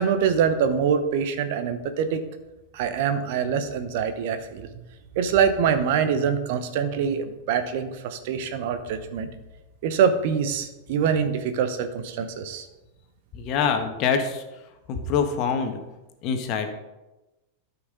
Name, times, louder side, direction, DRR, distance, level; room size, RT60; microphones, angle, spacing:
voice 1, 0.0-2.2 2.7-4.7 5.1-9.3 9.8-12.7, right 7 dB, 55° right, 9 dB, 0.9 m, -24 dB
voice 2, 13.3-14.4 14.9-15.8 16.2-16.7, left 6 dB, 45° left, 5 dB, 1.4 m, -25 dB
13.0 x 5.9 x 3.9 m, 1.0 s
figure-of-eight pair, 90°, 0 cm